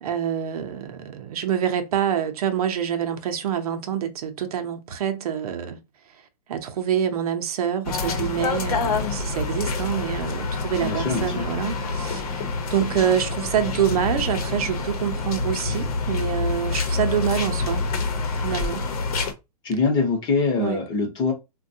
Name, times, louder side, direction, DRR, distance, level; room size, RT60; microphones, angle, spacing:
voice 1, 0.0-5.8 6.5-12.4 12.7-17.8 18.4-18.9 20.6-20.8, right 9 dB, 65° right, 0.7 m, -26 dB
sound 1, 7.8-19.3, left 3 dB, 60° left, 0.9 m, -27 dB
voice 2, 10.8-11.4 19.6-21.3, left 4 dB, 20° left, 0.9 m, -23 dB
3.6 x 2.2 x 2.6 m
hypercardioid pair, 155°, 21 cm